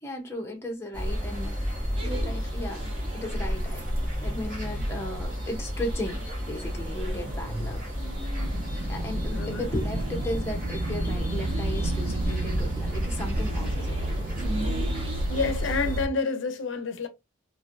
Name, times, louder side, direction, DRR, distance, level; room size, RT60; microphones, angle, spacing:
voice 1, 0.0-1.7 2.0-7.8 8.9-14.4, left 1 dB, 15° left, 0.7 m, -36 dB
sound 1, 0.9-16.1, equal, 45° right, 1.2 m, -30 dB
sound 2, 2.0-15.6, right 1 dB, 30° right, 0.9 m, -41 dB
Wind, 8.4-15.3, right 2 dB, 85° right, 0.6 m, -36 dB
voice 2, 9.3-9.7 15.1-17.1, left 4 dB, 80° left, 0.5 m, -29 dB
3.0 x 2.5 x 2.4 m
head